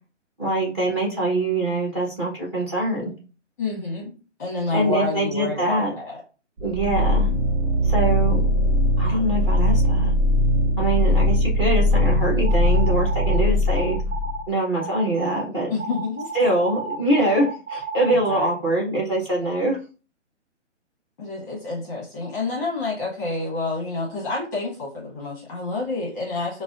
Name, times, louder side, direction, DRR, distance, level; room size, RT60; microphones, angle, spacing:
voice 1, 0.4-3.1 4.7-5.9 6.6-7.3 7.8-8.4 9.0-10.1 10.8-14.0 14.5-15.7 16.3-19.8, right 1 dB, 20° right, -3 dB, 0.8 m, -23 dB
voice 2, 3.6-6.2 15.7-16.3 18.1-18.8 21.2-26.6, left 3 dB, 15° left, -5 dB, 0.8 m, -29 dB
sound 1, 6.6-14.4, left 1 dB, 55° right, 0.9 m, -20 dB
sound 2, 12.4-13.4 13.8-14.4 14.8-15.4 15.8-18.5, right 4 dB, 85° right, 0.9 m, -32 dB
4.9 x 2.1 x 2.4 m, 0.35 s
hypercardioid pair, 160°, 37 cm